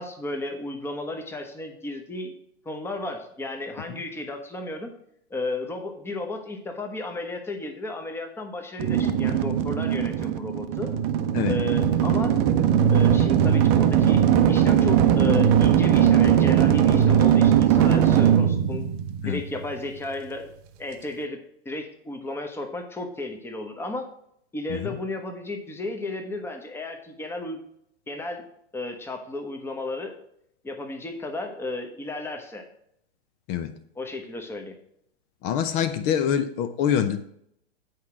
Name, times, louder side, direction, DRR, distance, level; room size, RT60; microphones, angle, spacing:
voice 1, 0.0-2.3 2.6-4.9 5.3-10.9 11.5-12.4 12.9-18.9 19.2-20.5 20.8-21.4 21.6-24.1 24.5-27.6 28.1-30.2 30.6-32.6 33.9-34.8, left 2 dB, 5° left, 4 dB, 1.0 m, -33 dB
sound 1, 8.8-19.8, right 9 dB, 40° right, 0.7 m, -20 dB
voice 2, 35.4-37.2, left 9 dB, 30° left, 10 dB, 0.6 m, -25 dB
8.3 x 4.7 x 6.0 m, 0.72 s
hypercardioid pair, 115°, 32 cm